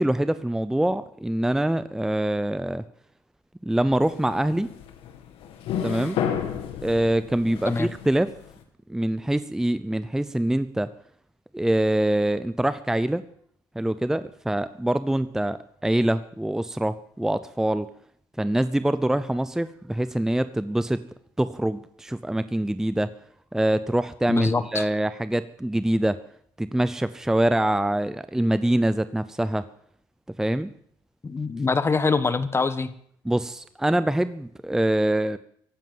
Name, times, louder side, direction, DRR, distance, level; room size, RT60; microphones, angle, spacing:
voice 1, 0.0-2.8 3.6-4.7 5.8-6.2 6.8-8.3 8.9-10.9 11.5-13.2 13.8-17.9 18.4-21.0 21.4-23.1 23.5-26.2 26.6-29.6 30.4-30.7 33.2-35.4, right 1 dB, 5° right, 14 dB, 0.6 m, -24 dB
sound 1, 3.8-8.5, left 8 dB, 70° left, 2.4 m, -32 dB
voice 2, 24.3-24.9 31.2-32.9, left 4 dB, 25° left, 14 dB, 1.3 m, -24 dB
15.5 x 11.5 x 7.7 m, 0.66 s
supercardioid pair, 85°, 10 cm